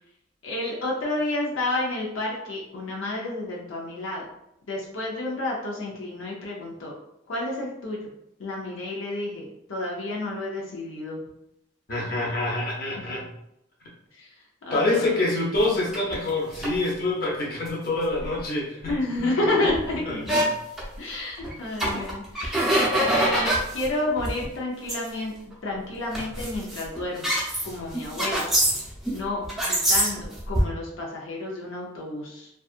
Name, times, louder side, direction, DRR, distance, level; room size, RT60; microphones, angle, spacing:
voice 1, 0.4-4.2 4.7-6.9 7.3-8.0 8.4-11.2 13.0-13.1 14.1-14.3 14.7-15.1 18.9-20.4 21.0-22.8 23.1-27.3 27.6-28.5 29.1-32.5, left 2 dB, 85° left, -3 dB, 0.6 m, -30 dB
voice 2, 11.9-13.3 14.7-18.8 19.2-19.5 20.1-20.4, left 2 dB, 50° left, -4 dB, 0.7 m, -26 dB
sound 1, 15.9-16.8 17.7-17.8 18.2-18.4 18.9-19.0 19.2-19.3 19.7-20.4 20.8-20.9 21.4-21.5 21.8-23.9 24.2-24.4 24.9-25.0 25.5-25.7 26.1-29.2 29.4-30.6, right 1 dB, ahead, 0.6 m, -25 dB
2.6 x 2.3 x 2.4 m, 0.81 s
head